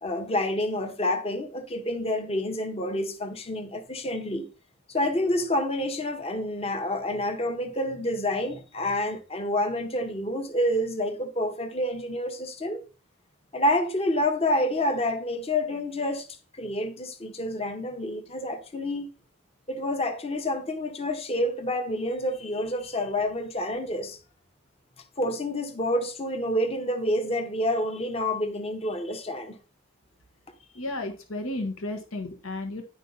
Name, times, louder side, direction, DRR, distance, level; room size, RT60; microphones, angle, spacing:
voice 1, 0.0-4.5 4.9-12.8 13.5-16.3 16.5-19.1 19.7-24.2 25.2-29.6, left 1 dB, 30° left, 1.0 m, -28 dB
voice 2, 30.7-32.8, left 2 dB, 90° left, 1.3 m, -33 dB
10.0 x 5.4 x 4.0 m
head